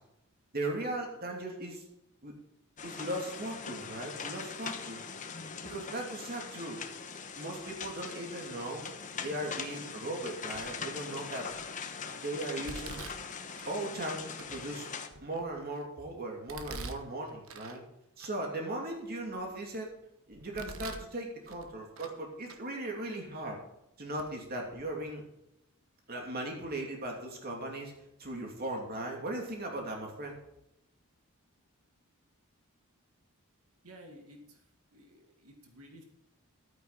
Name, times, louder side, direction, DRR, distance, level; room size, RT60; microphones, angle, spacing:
voice 1, 0.5-1.8 2.2-2.3 2.8-5.0 5.6-6.8 7.4-8.9 9.2-11.5 12.2-13.0 13.7-14.9 15.2-17.8 18.2-19.9 20.3-23.6 24.0-25.2 26.1-27.9 28.2-30.4, right 1 dB, 45° right, 1 dB, 2.8 m, -38 dB
sound 1, 2.8-15.1, left 6 dB, 35° left, 1.0 m, -42 dB
Domestic sounds home sounds, 10.5-10.9 11.5-11.9 12.6-13.8 14.4-14.5 15.1-15.8 16.5-17.8 18.2-18.3 18.9-19.8 20.3-21.1 21.4-22.2 22.4-22.6 23.4-23.5 24.2-24.3 24.6-24.8, right 3 dB, 65° right, 1.2 m, -46 dB
voice 2, 33.8-34.6 34.9-36.0, equal, 90° right, 2 dB, 2.1 m, -53 dB
12.5 x 9.0 x 4.2 m, 0.86 s
head